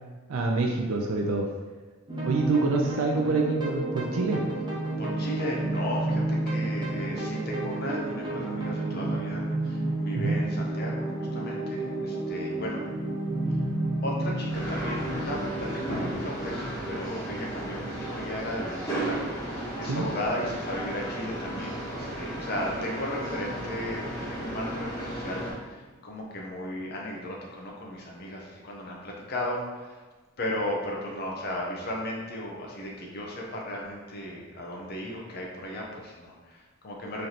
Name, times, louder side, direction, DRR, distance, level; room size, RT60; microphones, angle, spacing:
voice 1, 0.3-1.5 2.2-4.4 10.1-10.4 19.8-20.0, right 3 dB, 80° right, 0 dB, 0.4 m, -26 dB
sound 1, 2.1-19.0, right 1 dB, 20° right, 0.7 m, -31 dB
voice 2, 5.0-12.8 14.0-30.0 30.4-37.3, left 1 dB, 50° left, -2 dB, 0.6 m, -35 dB
sound 2, 14.5-25.5, right 1 dB, 15° left, 1.2 m, -34 dB
3.2 x 2.7 x 4.0 m, 1.3 s
head